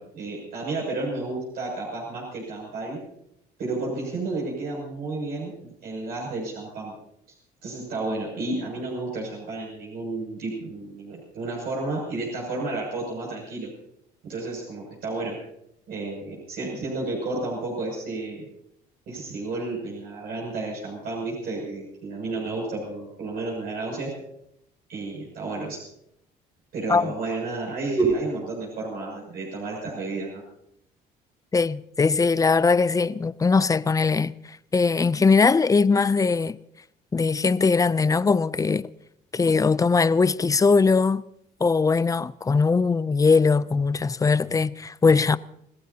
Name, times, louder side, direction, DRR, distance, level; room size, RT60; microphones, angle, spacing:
voice 1, 0.0-3.0 3.6-6.9 7.6-13.7 14.2-15.4 15.9-18.5 19.1-24.1 24.9-25.8 26.7-30.4, right 3 dB, 65° right, 7.1 m, -31 dB
voice 2, 31.5-36.6 37.1-38.9 39.3-41.2 41.6-45.4, left 4 dB, 20° left, 0.5 m, -21 dB
29.5 x 16.5 x 2.9 m
cardioid pair, 110°, 17 cm